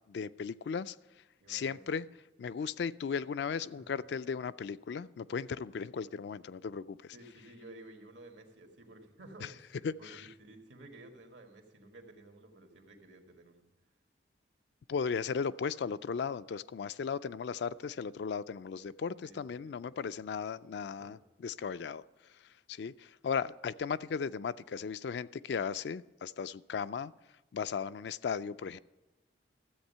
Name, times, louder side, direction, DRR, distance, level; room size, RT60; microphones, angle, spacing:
voice 1, 0.1-1.0 1.5-2.1 2.4-7.1 9.4-9.5 9.8-10.3 14.9-22.0 22.3-27.1 27.5-28.8, left 6 dB, 65° left, 15 dB, 0.3 m, -36 dB
voice 2, 1.4-1.8 3.6-4.0 7.1-13.6 19.2-20.0 21.0-21.2, right 2 dB, 85° right, 4 dB, 1.7 m, -54 dB
13.5 x 8.0 x 5.5 m, 1.1 s
head